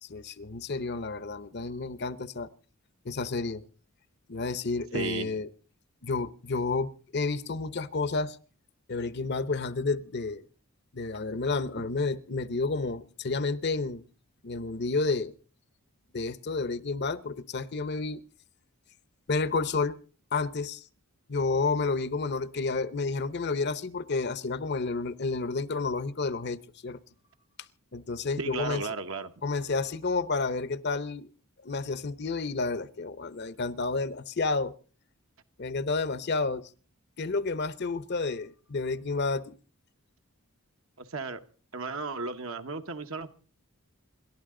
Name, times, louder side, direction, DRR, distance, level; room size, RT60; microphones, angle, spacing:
voice 1, 0.0-2.5 3.0-3.6 4.3-5.5 6.0-8.4 8.9-10.4 10.9-14.0 14.4-15.3 16.1-18.2 19.3-19.9 20.3-20.8 21.3-27.0 27.9-28.8 29.4-31.3 31.6-34.7 35.6-36.6 37.2-39.5, left 3 dB, 50° left, 16 dB, 0.8 m, -30 dB
voice 2, 4.9-5.3 28.4-29.3 41.0-41.4 41.7-43.4, right 4 dB, 65° right, 7 dB, 1.2 m, -34 dB
28.0 x 12.0 x 3.8 m, 0.38 s
head